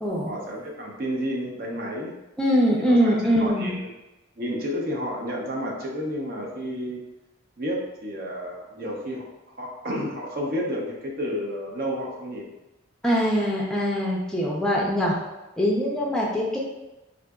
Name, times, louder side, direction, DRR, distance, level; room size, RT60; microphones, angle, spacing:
voice 1, 0.3-2.1 2.8-3.9 4.4-7.0 7.6-9.2 9.6-12.5, equal, 45° right, -2 dB, 0.6 m, -31 dB
voice 2, 2.4-3.8 13.0-15.2 15.6-16.6, equal, 5° left, -3 dB, 0.5 m, -22 dB
3.7 x 2.5 x 2.3 m, 1.0 s
head